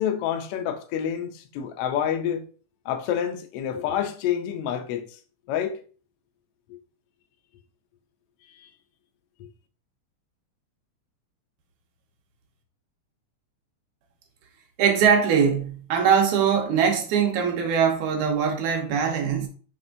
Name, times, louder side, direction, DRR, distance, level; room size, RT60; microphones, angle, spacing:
voice 1, 0.0-2.4 2.8-5.2 5.5-5.8 8.5-8.7, left 9 dB, 85° left, 1.3 m, -28 dB
voice 2, 14.8-19.5, right 7 dB, 80° right, 2.2 m, -22 dB
5.8 x 3.4 x 2.6 m
omnidirectional pair, 3.4 m